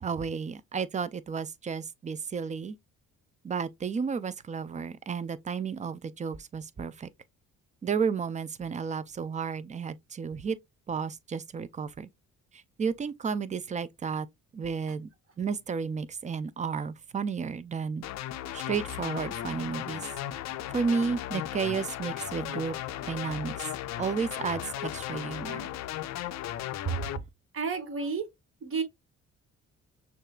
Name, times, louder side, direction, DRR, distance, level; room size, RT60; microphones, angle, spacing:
voice 1, 0.0-2.8 3.4-7.1 7.8-10.6 10.9-12.1 12.8-14.3 14.5-15.1 15.4-18.0 18.5-20.1 20.7-22.7 23.0-23.7 24.0-25.7 26.9-27.1, right 5 dB, 25° right, 0.4 m, -32 dB
sound 1, 18.0-27.2, left 12 dB, 65° left, 0.4 m, -36 dB
voice 2, 27.5-28.2 28.6-28.8, right 5 dB, 45° right, 1.0 m, -31 dB
6.2 x 2.5 x 2.2 m
cardioid pair, 90°, 30 cm